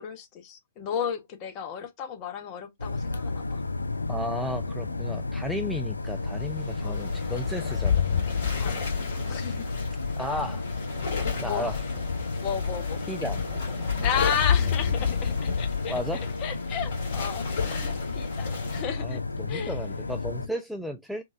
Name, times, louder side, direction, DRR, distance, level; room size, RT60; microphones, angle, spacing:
voice 1, 0.0-3.6 6.8-7.0 8.6-8.8 9.3-9.7 11.4-11.7 12.4-13.1 14.0-15.9 16.4-19.2 19.5-19.8, left 8 dB, 30° left, 0.7 m, -33 dB
sound 1, 2.8-20.5, left 3 dB, 75° left, 0.4 m, -33 dB
voice 2, 4.1-8.1 10.2-10.6 11.4-11.8 13.1-13.4 15.9-16.2 19.0-21.2, equal, ahead, 0.3 m, -34 dB
sound 2, 6.2-18.8, left 7 dB, 45° left, 2.0 m, -30 dB
3.7 x 2.4 x 2.4 m
figure-of-eight pair, 120°, 0 cm